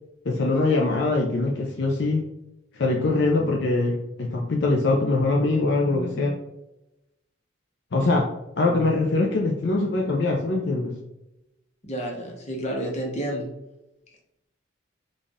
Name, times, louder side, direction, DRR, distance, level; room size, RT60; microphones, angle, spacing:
voice 1, 0.3-2.2 2.7-6.3 7.9-8.3 8.6-10.9, left 2 dB, 60° left, -1 dB, 0.5 m, -23 dB
voice 2, 11.8-13.5, right 1 dB, 35° left, 0 dB, 0.8 m, -30 dB
3.9 x 2.4 x 3.5 m, 0.90 s
head